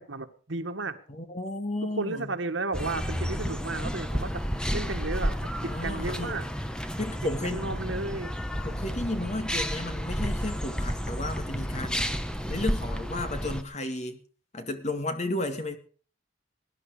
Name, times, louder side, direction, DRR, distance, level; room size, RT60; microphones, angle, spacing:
voice 1, 0.0-1.0 1.8-6.5 7.2-8.3, right 3 dB, 85° right, 1.7 m, -34 dB
voice 2, 1.1-2.3 5.6-6.4 7.0-7.6 8.6-12.1 12.5-14.2 14.5-15.8, left 2 dB, 35° left, 2.1 m, -33 dB
sound 1, 2.7-13.6, equal, 5° left, 1.1 m, -31 dB
20.0 x 11.0 x 5.0 m
head